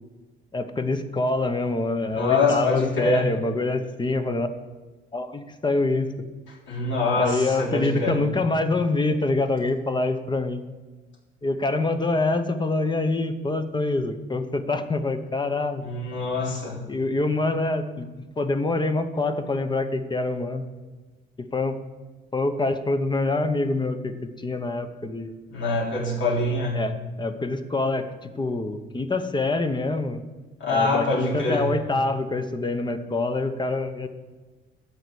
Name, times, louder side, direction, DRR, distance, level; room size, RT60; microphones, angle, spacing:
voice 1, 0.5-4.5 5.1-6.1 7.1-10.6 11.4-15.8 16.9-18.1 18.4-20.6 21.5-21.8 22.3-25.3 26.7-30.2 30.7-34.1, left 2 dB, 25° left, 8 dB, 0.9 m, -25 dB
voice 2, 2.1-3.3 6.7-8.2 15.8-16.8 25.5-26.8 30.6-31.7, left 3 dB, 70° left, -4 dB, 3.5 m, -24 dB
12.5 x 4.2 x 8.1 m, 1.3 s
cardioid pair, 90°, 20 cm